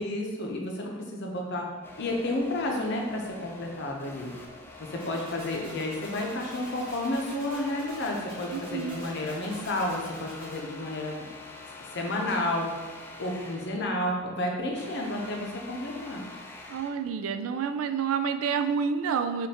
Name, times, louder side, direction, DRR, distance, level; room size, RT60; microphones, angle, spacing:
voice 1, 0.0-1.7 2.0-4.3 4.8-11.3 11.9-12.7 13.2-16.2, left 1 dB, 60° left, 0 dB, 0.7 m, -31 dB
sound 1, 1.8-13.9 14.2-17.0, left 2 dB, 10° left, 0.4 m, -45 dB
sound 2, 5.0-10.6, right 1 dB, 25° right, 1.4 m, -46 dB
voice 2, 8.5-9.0 16.7-19.5, right 6 dB, 80° right, 8 dB, 0.3 m, -29 dB
5.0 x 2.5 x 2.8 m, 1.3 s
head